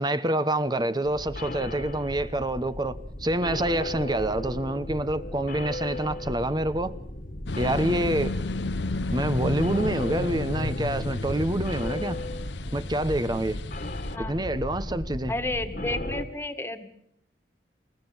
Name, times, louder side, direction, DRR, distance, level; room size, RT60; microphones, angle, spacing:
voice 1, 0.0-6.9 7.6-8.3 9.1-12.2 12.7-13.6 14.2-15.3, right 1 dB, 25° right, 1.1 m, -27 dB
sound 1, 1.0-16.3, left 1 dB, 50° left, 1.9 m, -36 dB
sound 2, 7.5-14.2, left 2 dB, 75° left, 0.8 m, -33 dB
voice 2, 15.3-16.8, left 2 dB, 15° left, 2.0 m, -31 dB
28.5 x 16.0 x 7.3 m
head